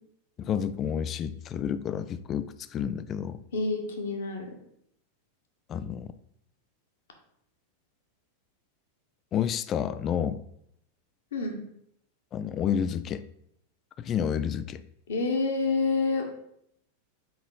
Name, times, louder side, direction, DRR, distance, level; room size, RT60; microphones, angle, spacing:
voice 1, 0.4-3.4 5.7-6.1 9.3-10.4 12.3-13.2 14.0-14.8, left 8 dB, 30° left, 13 dB, 0.4 m, -30 dB
voice 2, 3.5-4.5 11.3-11.6 15.1-16.2, left 3 dB, 60° left, 3 dB, 1.4 m, -27 dB
7.1 x 5.0 x 3.8 m, 0.74 s
figure-of-eight pair, 90°, 0 cm